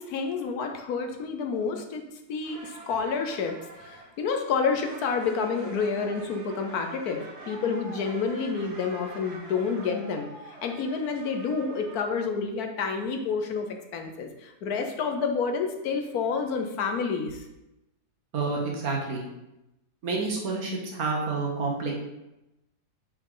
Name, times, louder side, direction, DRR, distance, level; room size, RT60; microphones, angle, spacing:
voice 1, 0.0-2.0 2.3-13.7 13.9-17.4, left 5 dB, 70° left, 5 dB, 1.3 m, -29 dB
sound 1, 2.4-12.0, right 2 dB, 40° right, 1.9 m, -46 dB
voice 2, 18.3-19.2 20.0-21.9, right 3 dB, 65° right, -1 dB, 1.7 m, -29 dB
6.9 x 4.7 x 3.9 m, 0.93 s
omnidirectional pair, 1.7 m